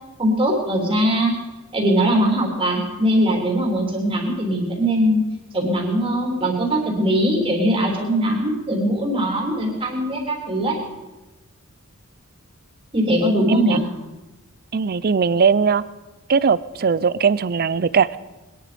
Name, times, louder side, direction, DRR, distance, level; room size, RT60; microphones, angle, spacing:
voice 1, 0.2-1.3 1.7-5.2 5.5-10.8 12.9-13.8, equal, 25° right, 0 dB, 3.4 m, -21 dB
voice 2, 14.7-15.8 16.3-18.2, right 6 dB, 45° right, 17 dB, 0.5 m, -19 dB
21.0 x 11.0 x 5.2 m, 1.1 s
head